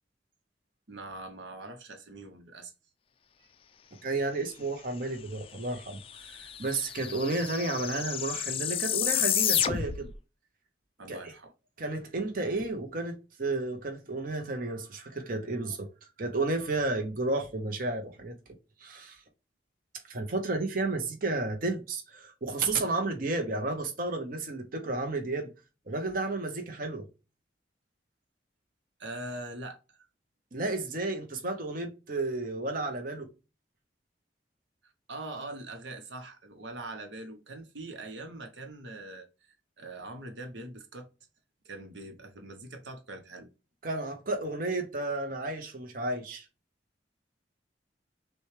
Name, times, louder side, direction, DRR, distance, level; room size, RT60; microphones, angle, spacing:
voice 1, 0.9-2.7 11.0-11.5 29.0-30.1 34.8-41.1 41.6-43.5, right 2 dB, 85° right, 0.9 m, -43 dB
voice 2, 4.0-10.1 11.1-11.2 11.8-15.9 16.2-18.3 18.8-19.2 20.1-25.5 25.9-27.0 30.5-33.3 43.8-46.5, right 2 dB, 50° right, 0.8 m, -32 dB
sound 1, 5.6-5.7 5.9-10.2, left 10 dB, 30° left, 0.3 m, -30 dB
6.1 x 2.3 x 3.2 m
head